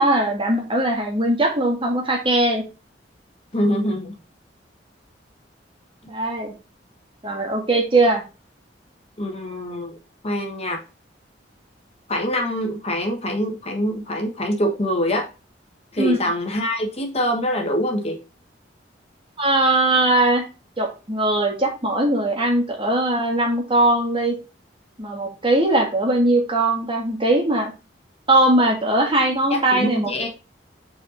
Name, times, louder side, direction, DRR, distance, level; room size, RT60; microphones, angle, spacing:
voice 1, 0.0-2.6 6.1-6.5 7.2-8.2 16.0-16.2 19.4-20.4 20.8-24.3 25.0-27.7 28.3-30.1, right 2 dB, 30° right, 1 dB, 1.9 m, -20 dB
voice 2, 3.5-4.2 9.2-10.0 10.2-10.8 12.1-15.3 15.9-18.2 29.5-30.3, equal, 35° left, 3 dB, 1.3 m, -24 dB
5.4 x 4.5 x 5.0 m, 0.31 s
head